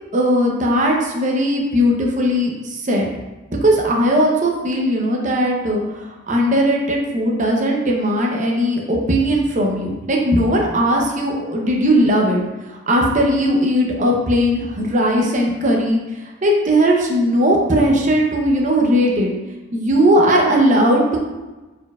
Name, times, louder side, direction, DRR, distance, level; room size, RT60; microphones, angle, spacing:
voice 1, 0.1-3.1 3.6-16.0 16.4-19.3 19.7-21.2, equal, 35° right, 0 dB, 0.7 m, -18 dB
4.4 x 4.3 x 2.3 m, 1.2 s
head